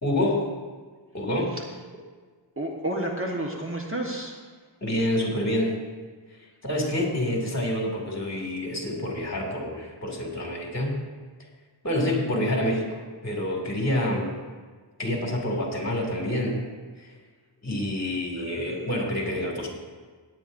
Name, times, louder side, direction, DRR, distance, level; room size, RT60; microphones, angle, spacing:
voice 1, 0.0-0.5 1.1-1.6 4.8-5.8 6.6-11.0 11.8-14.3 15.0-16.6 17.0-17.1 17.6-19.7, left 1 dB, 35° left, 0 dB, 2.5 m, -27 dB
voice 2, 2.6-4.4 18.4-18.5, right 1 dB, 30° right, 0 dB, 1.3 m, -30 dB
17.0 x 9.9 x 2.6 m, 1.5 s
wide cardioid pair, 110°, 43 cm